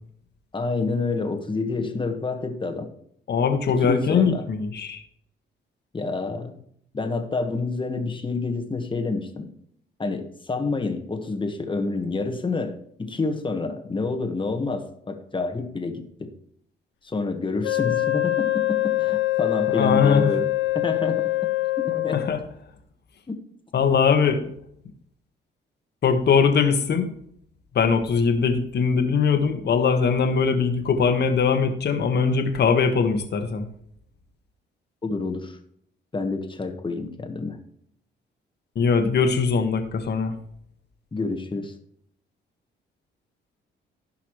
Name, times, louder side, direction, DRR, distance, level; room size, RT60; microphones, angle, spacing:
voice 1, 0.5-2.9 3.7-4.5 5.9-6.6 6.9-9.5 10.0-16.3 17.0-20.5 20.7-21.3 21.9-22.2 35.0-35.6 36.1-37.6 41.1-41.7, left 3 dB, 25° left, 5 dB, 1.5 m, -28 dB
voice 2, 3.3-5.0 19.7-20.3 22.1-22.4 23.7-24.4 26.0-27.1 27.8-33.7 38.8-40.3, left 5 dB, 55° left, 6 dB, 1.6 m, -21 dB
Wind instrument woodwind instrument, 17.6-22.4, left 17 dB, 75° left, 1.0 m, -24 dB
16.0 x 5.8 x 3.2 m, 0.69 s
cardioid pair, 90°, 20 cm